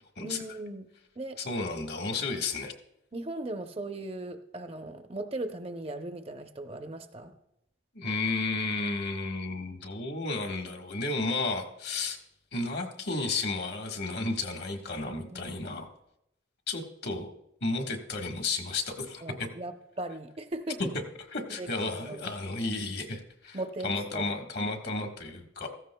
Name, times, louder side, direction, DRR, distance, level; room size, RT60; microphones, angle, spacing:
voice 1, 0.2-0.9 1.2-1.4 3.1-7.3 15.2-15.6 19.2-20.8 21.5-22.3 23.5-24.4, right 2 dB, 30° right, 7 dB, 0.6 m, -38 dB
voice 2, 1.4-2.7 7.9-12.2 12.5-15.9 16.7-17.3 17.6-19.5 21.3-25.7, left 3 dB, 60° left, 3 dB, 1.4 m, -33 dB
15.5 x 14.0 x 2.2 m, 0.83 s
head